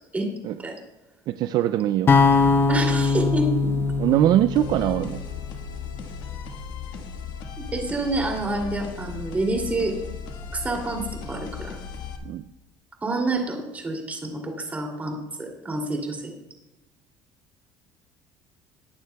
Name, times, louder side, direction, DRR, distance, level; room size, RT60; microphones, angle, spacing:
voice 1, 1.3-2.2 4.0-5.2 12.2-12.4, right 12 dB, 55° right, 12 dB, 0.4 m, -22 dB
sound 1, 2.1-6.2, left 4 dB, 25° left, 0.7 m, -22 dB
voice 2, 2.7-3.7 7.6-10.0 10.5-11.8 13.0-16.3, right 2 dB, 20° right, 1 dB, 2.7 m, -28 dB
sound 2, 4.5-12.2, left 6 dB, 65° left, 1.5 m, -36 dB
19.5 x 9.0 x 2.3 m, 1.0 s
cardioid pair, 125°, 8 cm